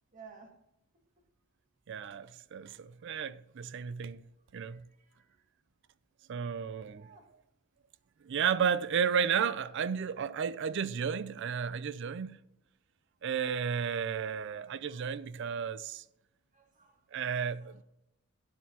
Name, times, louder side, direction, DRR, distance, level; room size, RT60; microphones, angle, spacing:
voice 1, 0.1-0.6 4.7-4.8 5.1-5.2 7.0-7.3 14.8-15.2 16.5-17.2, right 5 dB, 40° right, 1.6 m, -55 dB
voice 2, 1.9-4.2 4.5-4.8 6.3-7.1 8.3-12.4 13.2-16.0 17.1-17.8, right 7 dB, 60° right, 0.4 m, -33 dB
12.0 x 9.5 x 2.9 m
head